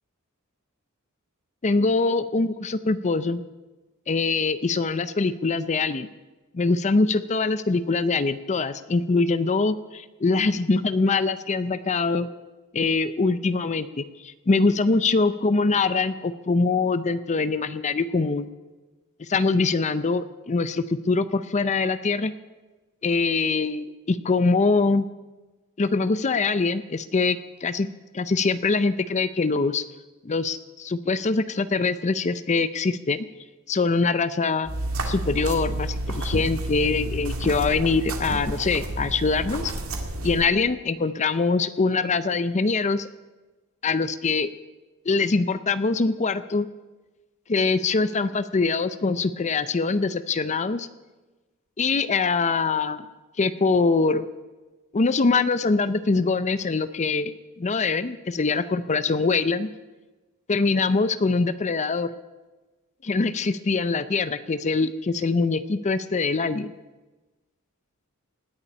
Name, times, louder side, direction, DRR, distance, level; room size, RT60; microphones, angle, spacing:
voice 1, 1.6-3.4 4.1-6.1 6.5-12.3 12.7-18.5 19.2-22.3 23.0-25.1 25.8-27.9 28.1-29.8 30.2-33.3 33.7-34.7 35.0-39.7 40.2-43.1 43.8-44.5 45.1-46.7 47.5-50.9 51.8-53.1 53.4-54.3 54.9-57.3 57.6-59.7 60.5-62.1 63.0-66.7, left 4 dB, 35° left, 13 dB, 0.5 m, -23 dB
sound 1, 34.6-40.5, right 1 dB, 75° right, 2.1 m, -30 dB
18.5 x 7.0 x 10.0 m, 1.2 s
head